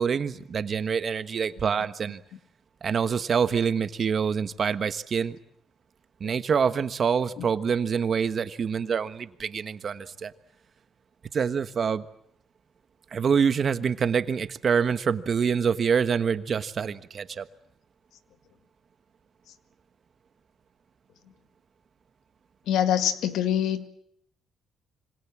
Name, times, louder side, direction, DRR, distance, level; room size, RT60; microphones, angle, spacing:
voice 1, 0.0-2.2 2.8-5.4 6.2-10.3 11.3-12.0 13.1-17.5, right 6 dB, 50° right, 12 dB, 1.4 m, -26 dB
voice 2, 22.7-23.9, left 10 dB, 85° left, 10 dB, 1.8 m, -25 dB
26.5 x 25.5 x 7.5 m, 0.71 s
cardioid pair, 90°, 0 cm